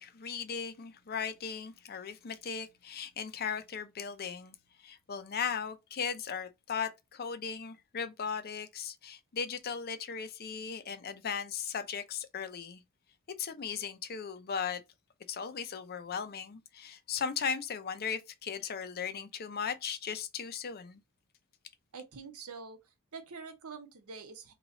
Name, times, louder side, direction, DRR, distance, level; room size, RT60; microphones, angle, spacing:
voice 1, 0.0-12.8 13.4-14.8 15.3-21.0, left 6 dB, 45° left, 0.5 m, -37 dB
voice 2, 21.9-22.8 23.1-24.5, right 5 dB, 80° right, 0.9 m, -45 dB
3.1 x 2.9 x 3.9 m
head